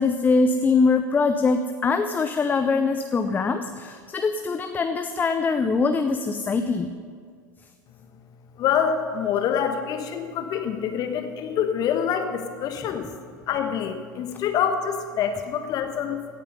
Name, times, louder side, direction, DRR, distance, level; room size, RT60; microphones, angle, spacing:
voice 1, 0.0-6.9, left 4 dB, 15° left, 8 dB, 0.5 m, -23 dB
voice 2, 8.6-13.1 13.5-16.3, left 8 dB, 35° left, 6 dB, 1.4 m, -26 dB
17.0 x 8.4 x 5.5 m, 2.1 s
figure-of-eight pair, 80°, 10 cm